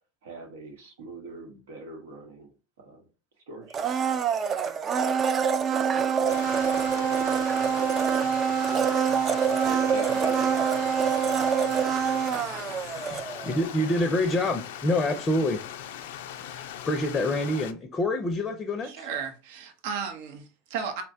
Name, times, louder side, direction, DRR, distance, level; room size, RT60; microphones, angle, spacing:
voice 1, 0.2-3.1 3.3-4.2 9.6-10.8, right 2 dB, 85° right, 1.0 m, -43 dB
Domestic sounds home sounds, 3.7-13.7 14.0-14.1, right 7 dB, 35° right, 0.3 m, -25 dB
Stream, 6.3-17.7, left 10 dB, 80° left, 0.3 m, -40 dB
voice 2, 12.3-12.8 18.8-21.0, right 6 dB, 70° right, 0.6 m, -35 dB
voice 3, 13.1-15.6 16.4-19.1, left 1 dB, 20° left, 0.5 m, -27 dB
4.0 x 2.2 x 2.7 m
supercardioid pair, 105°, 0 cm